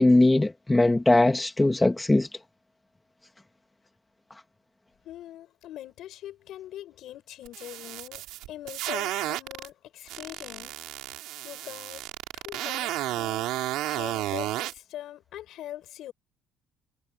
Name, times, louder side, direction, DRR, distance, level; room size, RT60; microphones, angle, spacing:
voice 1, 0.0-2.3, left 2 dB, 10° left, 1.7 m, -20 dB
voice 2, 5.0-10.7 11.4-12.0 12.3-16.1, left 13 dB, 65° left, 7.5 m, -42 dB
sound 1, 7.5-9.7 10.1-14.7, right 16 dB, 85° right, 5.1 m, -32 dB
cardioid pair, 150°, 0 cm